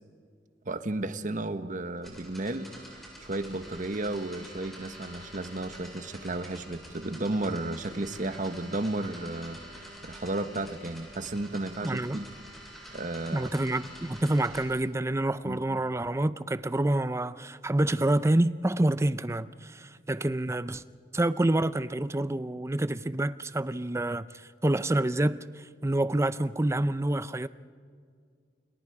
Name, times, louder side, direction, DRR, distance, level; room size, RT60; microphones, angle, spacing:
voice 1, 0.6-12.3 12.9-13.5 15.4-15.6, right 2 dB, 45° right, 1.3 m, -33 dB
sound 1, 2.0-14.6, equal, ahead, 7.8 m, -47 dB
voice 2, 11.8-12.2 13.3-20.8 21.1-24.3 24.6-27.5, right 1 dB, 15° right, 0.6 m, -27 dB
29.0 x 29.0 x 4.9 m
head